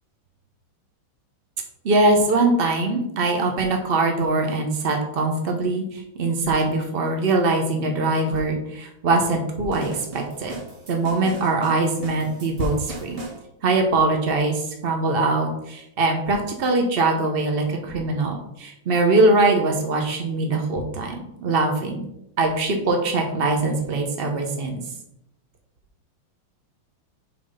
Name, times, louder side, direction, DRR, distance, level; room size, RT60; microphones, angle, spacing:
voice 1, 1.8-10.5 10.9-13.2 13.6-21.1 21.4-22.0 22.4-24.8, right 2 dB, 70° right, 2 dB, 0.5 m, -22 dB
sound 1, 9.7-13.4, right 3 dB, 40° right, 1.2 m, -38 dB
6.2 x 4.1 x 5.5 m, 0.80 s
omnidirectional pair, 2.4 m